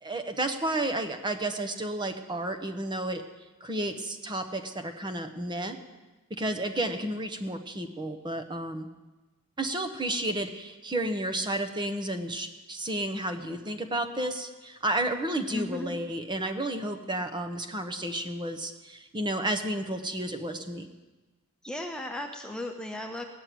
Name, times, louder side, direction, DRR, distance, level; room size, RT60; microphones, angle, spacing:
voice 1, 0.0-3.2 3.6-5.8 6.4-8.9 9.6-20.9, right 1 dB, 20° right, 7 dB, 1.0 m, -32 dB
voice 2, 15.5-15.9 21.6-23.2, left 2 dB, 5° left, 3 dB, 0.8 m, -36 dB
17.5 x 6.5 x 9.2 m, 1.2 s
head